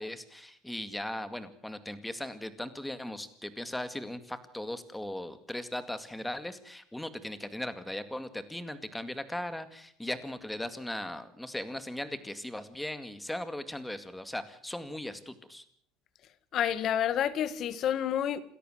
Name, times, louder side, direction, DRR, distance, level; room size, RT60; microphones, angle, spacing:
voice 1, 0.0-15.6, left 1 dB, 5° left, 2.1 m, -38 dB
voice 2, 16.5-18.4, left 10 dB, 45° left, 1.7 m, -29 dB
28.0 x 13.5 x 8.0 m
cardioid pair, 125°, 0 cm